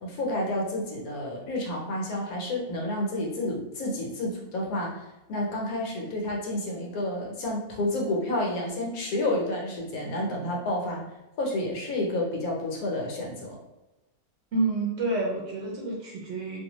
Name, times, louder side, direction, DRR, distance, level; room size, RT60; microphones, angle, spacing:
voice 1, 0.0-11.0 11.4-13.6, left 1 dB, 75° left, -1 dB, 1.2 m, -30 dB
voice 2, 14.5-16.6, right 2 dB, 65° right, -3 dB, 0.7 m, -28 dB
2.6 x 2.2 x 2.9 m, 0.99 s
omnidirectional pair, 1.6 m